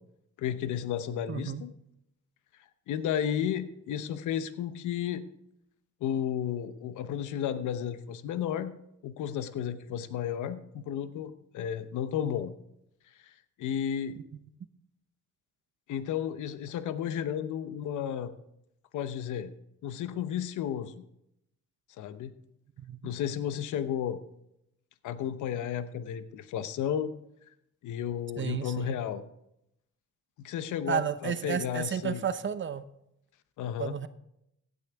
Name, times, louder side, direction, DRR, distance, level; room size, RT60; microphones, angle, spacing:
voice 1, 0.4-1.7 2.9-5.3 6.0-8.7 9.0-12.5 13.2-13.3 13.6-14.2 15.9-18.3 18.9-19.5 19.8-20.9 22.0-22.3 23.0-24.2 25.0-27.1 27.8-29.2 30.4-32.2 33.6-34.0, left 9 dB, 80° left, 12 dB, 0.9 m, -33 dB
voice 2, 1.3-1.6 22.8-23.1 28.4-29.0 30.9-32.8 33.8-34.1, right 8 dB, 40° right, 13 dB, 0.8 m, -32 dB
15.5 x 9.4 x 3.5 m, 0.80 s
cardioid pair, 90°, 30 cm